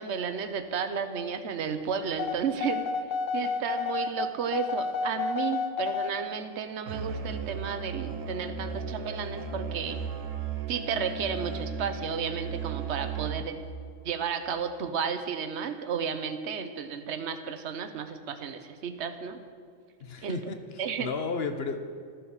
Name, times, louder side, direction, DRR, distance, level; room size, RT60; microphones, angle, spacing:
voice 1, 0.0-2.8 3.3-10.0 10.7-13.6 14.0-19.4 20.2-20.4 20.8-21.1, right 6 dB, 60° right, 9 dB, 1.2 m, -33 dB
sound 1, 2.2-6.2, left 5 dB, 75° left, 1.2 m, -30 dB
Musical instrument, 6.9-13.7, right 5 dB, 75° right, 1.5 m, -35 dB
voice 2, 20.0-21.8, left 4 dB, 50° left, 8 dB, 1.2 m, -34 dB
14.0 x 10.5 x 7.2 m, 2.2 s
omnidirectional pair, 1.3 m